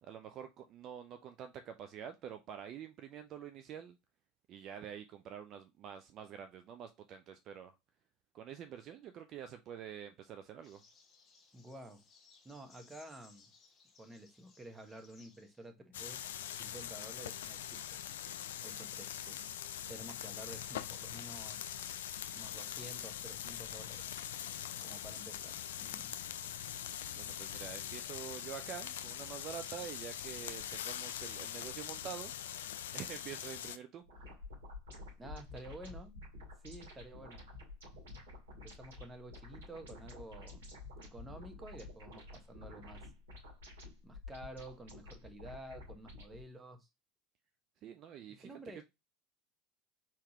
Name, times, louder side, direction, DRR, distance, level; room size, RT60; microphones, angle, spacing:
voice 1, 0.0-4.0 4.5-7.7 8.3-10.8 18.5-18.7 19.3-19.4 24.4-25.0 27.2-32.6 32.9-34.0 47.8-48.8, right 9 dB, 45° right, 0.5 m, -47 dB
sound 1, 10.6-15.7, left 4 dB, 30° left, 1.0 m, -64 dB
voice 2, 11.5-12.0 12.4-13.5 14.0-16.2 16.5-18.0 18.6-19.3 19.9-21.7 22.3-24.1 24.8-26.1 35.2-36.2 36.6-37.4 38.5-40.7 41.0-43.1 44.0-46.9 48.4-48.8, right 1 dB, 15° right, 1.2 m, -51 dB
sound 2, 15.9-33.8, left 10 dB, 75° left, 0.4 m, -43 dB
sound 3, 34.0-46.4, left 2 dB, 75° right, 2.6 m, -51 dB
4.3 x 3.9 x 2.9 m
hypercardioid pair, 75°, 0 cm